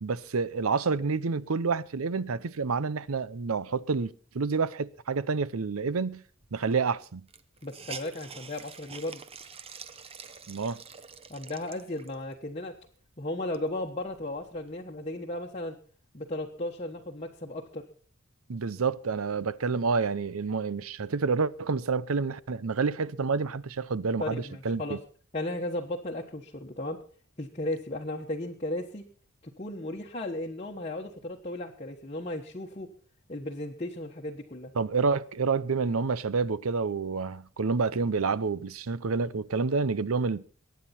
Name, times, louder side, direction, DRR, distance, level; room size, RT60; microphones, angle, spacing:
voice 1, 0.0-6.2 6.5-7.2 10.5-10.8 18.5-25.0 34.8-40.5, right 4 dB, 80° right, 0.7 m, -28 dB
Hiss, 6.4-6.5 6.8-6.9 7.3-12.3 12.9-13.0 13.3-14.7, right 6 dB, 30° right, 0.8 m, -46 dB
voice 2, 7.6-9.2 11.3-12.7 13.2-15.7 16.1-17.9 24.2-25.0 25.3-27.0 27.4-29.0 29.4-32.9 33.3-34.7, left 1 dB, 30° left, 1.2 m, -35 dB
23.0 x 9.4 x 4.3 m
head